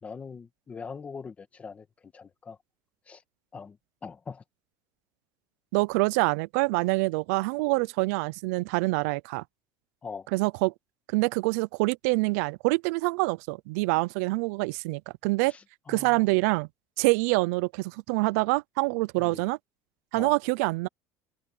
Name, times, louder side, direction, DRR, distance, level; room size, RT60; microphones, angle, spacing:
voice 1, 0.0-2.6 3.1-3.2 3.5-4.4 10.0-10.3 15.5-16.2 19.2-19.4 20.1-20.3, left 5 dB, 15° left, 1.7 m, -42 dB
voice 2, 5.7-9.4 10.3-10.7 11.1-15.5 15.9-16.7 17.0-19.6 20.1-20.9, right 25 dB, 80° right, 0.5 m, -26 dB
cardioid pair, 170°, 8 cm